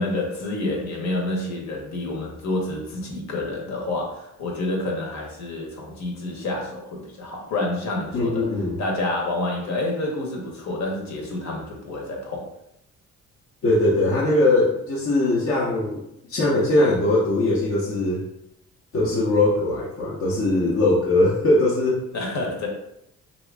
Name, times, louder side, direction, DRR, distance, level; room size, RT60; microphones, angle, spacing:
voice 1, 0.0-8.5 8.8-12.5 22.1-22.7, left 2 dB, 65° left, -1 dB, 1.1 m, -28 dB
voice 2, 8.1-8.8 13.6-18.3 18.9-22.0, left 2 dB, 50° left, -5 dB, 0.8 m, -21 dB
2.8 x 2.6 x 3.4 m, 0.79 s
cardioid pair, 90°, 30 cm